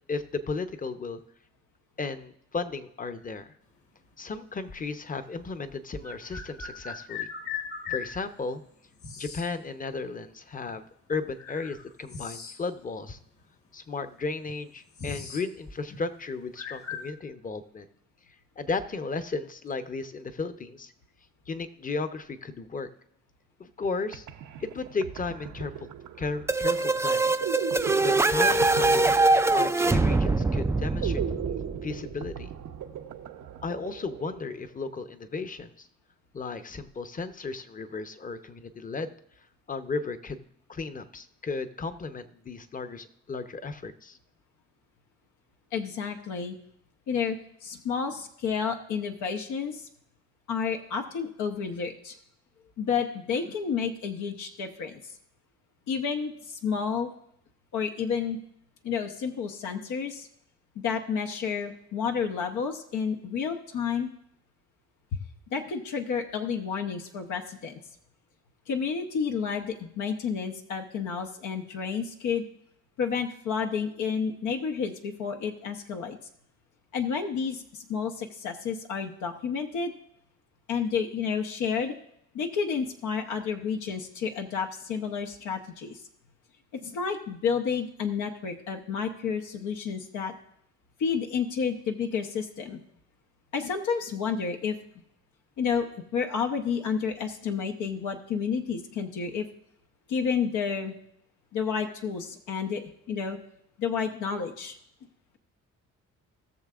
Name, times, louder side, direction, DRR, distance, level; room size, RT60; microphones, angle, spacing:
voice 1, 0.1-1.2 2.0-3.5 4.2-7.3 7.9-8.6 9.2-13.2 13.7-17.9 18.6-20.9 21.5-22.9 23.6-24.3 24.6-25.9 26.2-27.4 28.0-29.2 29.5-31.2 31.8-32.5 33.6-35.9 36.3-39.1 39.7-40.4 40.7-44.2, left 4 dB, 25° left, 10 dB, 0.8 m, -34 dB
sound 1, 4.8-4.9 6.0-8.1 9.0-9.5 10.6-10.7 11.4-12.8 13.1-13.2 14.0-14.1 14.4-15.5 15.8-16.0 16.6-17.1, left 6 dB, 50° left, 1.3 m, -38 dB
sound 2, 23.8-23.9 24.1-34.7, right 9 dB, 80° right, 0.9 m, -38 dB
sound 3, 26.5-32.1, right 2 dB, 10° right, 0.4 m, -23 dB
voice 2, 45.7-46.6 47.1-49.9 50.5-52.1 52.8-55.0 55.9-57.1 57.7-58.4 58.8-60.3 60.8-64.1 65.1-65.2 65.5-67.8 68.7-72.4 73.0-76.2 76.9-79.9 80.7-82.0 82.3-86.0 86.7-90.3 91.0-92.8 93.5-94.8 95.6-95.9 96.1-99.5 100.1-100.9 101.5-103.4 103.8-104.7, left 6 dB, 80° left, 3 dB, 1.0 m, -30 dB
18.5 x 6.6 x 2.5 m, 0.74 s
cardioid pair, 90°, 30 cm